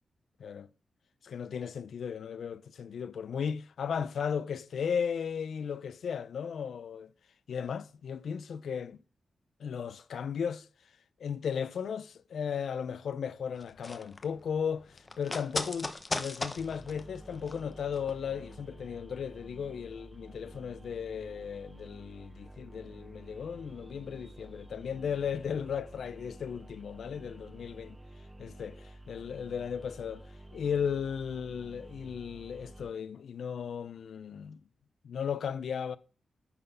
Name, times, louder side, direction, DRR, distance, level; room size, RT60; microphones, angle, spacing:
voice 1, 0.4-0.7 1.2-7.1 7.5-9.0 9.6-10.7 11.2-27.9 28.4-34.6 35.0-36.0, left 7 dB, 80° left, 0.5 m, -36 dB
sound 1, 13.6-18.2 18.5-18.6, left 3 dB, 30° left, 0.8 m, -38 dB
sound 2, 16.6-32.9, right 1 dB, 10° right, 0.3 m, -50 dB
9.7 x 3.9 x 5.5 m
wide cardioid pair, 110°, 0 cm